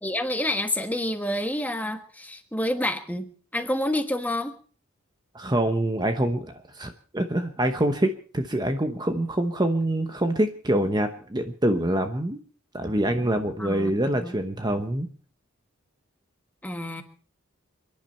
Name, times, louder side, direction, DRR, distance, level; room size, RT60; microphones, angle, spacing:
voice 1, 0.0-4.5 13.6-14.3 16.6-17.0, left 1 dB, 5° left, 7 dB, 1.4 m, -28 dB
voice 2, 5.3-12.4 12.7-15.1, right 1 dB, 20° right, 7 dB, 0.9 m, -25 dB
28.5 x 10.5 x 4.4 m, 0.42 s
head